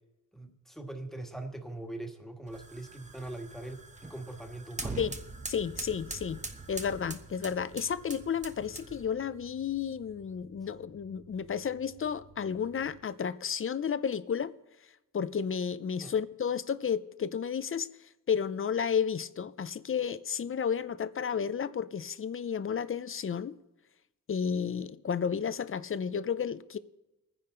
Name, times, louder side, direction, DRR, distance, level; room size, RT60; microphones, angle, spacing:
voice 1, 0.3-5.0 16.0-16.1, right 2 dB, ahead, 1.7 m, -42 dB
sound 1, 2.5-9.2, right 3 dB, 20° right, 1.1 m, -43 dB
sound 2, 3.0-13.0, right 1 dB, 55° right, 3.3 m, -58 dB
voice 2, 5.5-6.4 6.7-14.5 15.1-17.9 18.3-23.6 24.3-26.8, left 7 dB, 40° left, 0.6 m, -32 dB
22.0 x 10.0 x 3.8 m
wide cardioid pair, 105°, 32 cm